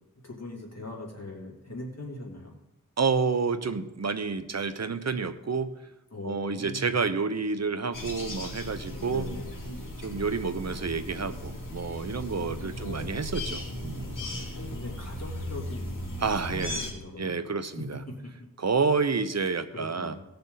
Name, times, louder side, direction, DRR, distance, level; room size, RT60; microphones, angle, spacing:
voice 1, 0.2-2.5 6.1-7.0 9.1-9.5 12.3-13.3 14.5-16.0 16.5-17.3 18.2-18.3 19.7-20.2, left 2 dB, 50° left, -2 dB, 3.0 m, -40 dB
voice 2, 3.0-5.7 6.2-9.3 10.0-14.1 16.2-16.8 17.2-18.0 18.6-20.2, right 5 dB, 50° right, 11 dB, 0.9 m, -29 dB
sound 1, 7.9-16.9, left 1 dB, 70° left, 2.7 m, -37 dB
17.5 x 6.8 x 4.0 m, 0.94 s
wide cardioid pair, 55°, 33 cm